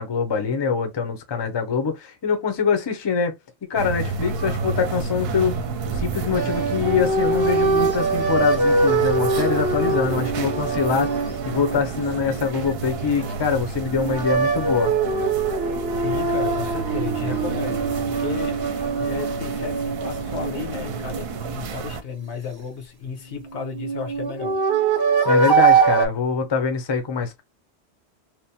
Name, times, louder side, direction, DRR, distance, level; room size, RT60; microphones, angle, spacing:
voice 1, 0.0-3.3 3.7-5.6 5.9-14.9 25.2-27.4, left 5 dB, 35° left, 0.5 m, -24 dB
sound 1, 3.8-22.0, right 4 dB, 70° right, 0.8 m, -31 dB
sound 2, 6.3-13.4 13.9-21.7 23.4-26.1, right 4 dB, 30° right, 0.5 m, -23 dB
voice 2, 16.0-24.6, left 6 dB, 80° left, 1.1 m, -34 dB
3.0 x 2.0 x 2.7 m
omnidirectional pair, 1.1 m